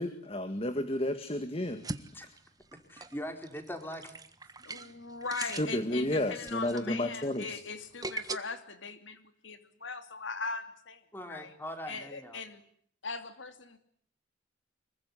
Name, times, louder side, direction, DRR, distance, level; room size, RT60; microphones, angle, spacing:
voice 1, 0.0-1.8 5.4-7.6, left 1 dB, 30° left, 9 dB, 1.9 m, -32 dB
sound 1, 1.7-8.4, right 3 dB, 20° right, 1.5 m, -42 dB
voice 2, 2.9-4.1 11.1-12.4, equal, 10° left, 6 dB, 4.6 m, -41 dB
voice 3, 4.6-11.0 11.3-11.5 11.9-12.6 13.0-13.8, left 4 dB, 80° left, 9 dB, 2.9 m, -40 dB
25.5 x 23.0 x 9.9 m, 0.62 s
head